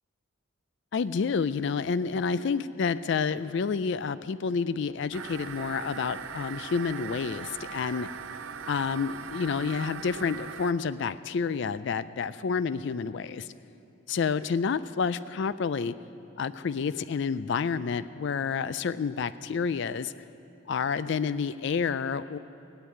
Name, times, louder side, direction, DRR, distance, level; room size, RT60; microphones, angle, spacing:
voice 1, 0.9-8.1 8.7-13.5 14.1-15.9 16.4-20.1 20.7-22.4, left 5 dB, 60° left, 15 dB, 0.4 m, -29 dB
sound 1, 5.1-10.7, right 7 dB, 75° right, 0.6 m, -40 dB
16.0 x 8.2 x 9.5 m, 2.7 s
head